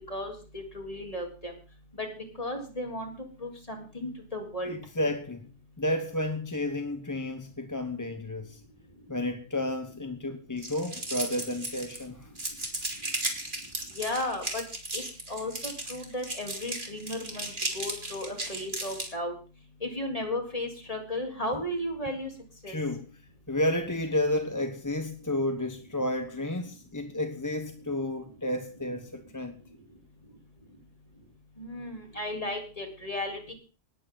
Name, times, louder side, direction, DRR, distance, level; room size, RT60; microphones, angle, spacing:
voice 1, 0.1-1.5 2.0-2.1 2.4-3.1 3.4-4.7 14.0-14.6 14.9-15.0 15.3-17.5 17.7-19.3 19.8-22.3 22.6-22.7 31.6-33.5, left 1 dB, 35° left, 3.8 m, -34 dB
voice 2, 4.7-5.5 5.8-8.6 9.1-12.3 22.7-23.1 23.5-29.6, left 1 dB, 20° left, 1.1 m, -31 dB
sound 1, 10.6-12.0 12.4-19.1, right 1 dB, 50° right, 3.4 m, -35 dB
19.0 x 13.5 x 4.0 m
omnidirectional pair, 1.1 m